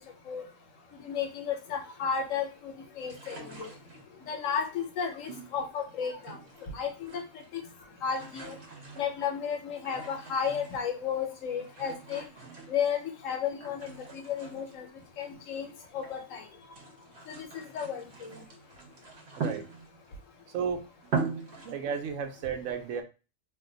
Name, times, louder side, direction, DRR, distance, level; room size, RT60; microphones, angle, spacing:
voice 1, 0.9-3.7 4.3-6.4 6.7-7.2 7.5-7.6 8.0-8.6 9.0-12.2 12.7-14.8 15.2-15.7 15.9-16.4 17.3-18.4, left 7 dB, 90° left, 4 dB, 1.1 m, -33 dB
sound 1, 3.0-4.3 5.2-6.7 7.0-7.6 7.9-11.0 11.6-13.2 13.6-16.2 16.6-20.2 20.6-20.7 21.0-21.8, right 5 dB, 60° right, 1.0 m, -41 dB
voice 2, 19.4-19.7 20.5-20.9 21.6-23.0, right 6 dB, 85° right, 7 dB, 1.0 m, -33 dB
2.7 x 2.2 x 3.7 m, 0.31 s
omnidirectional pair, 1.3 m